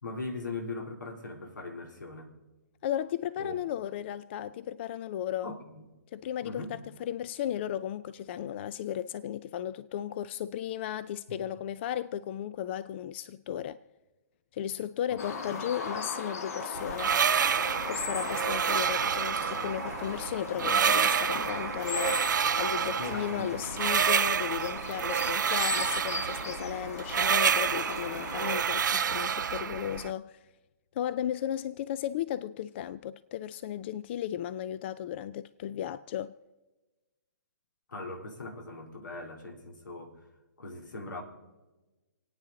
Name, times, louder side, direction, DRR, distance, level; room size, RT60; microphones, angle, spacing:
voice 1, 0.0-2.3 3.4-3.6 5.4-5.8 6.4-6.7 11.3-11.4 15.1-15.2 15.5-15.6 23.0-23.8 37.9-40.1 40.6-41.2, left 2 dB, 85° left, 3.3 m, -40 dB
voice 2, 2.8-5.5 6.1-13.8 14.5-17.2 17.9-30.4 31.0-36.3, left 10 dB, 35° left, 0.4 m, -35 dB
sound 1, 15.2-28.6, left 4 dB, 55° left, 1.6 m, -38 dB
sound 2, 16.8-30.1, right 7 dB, 75° right, 0.4 m, -29 dB
28.0 x 9.3 x 4.0 m
hypercardioid pair, 150°, 10 cm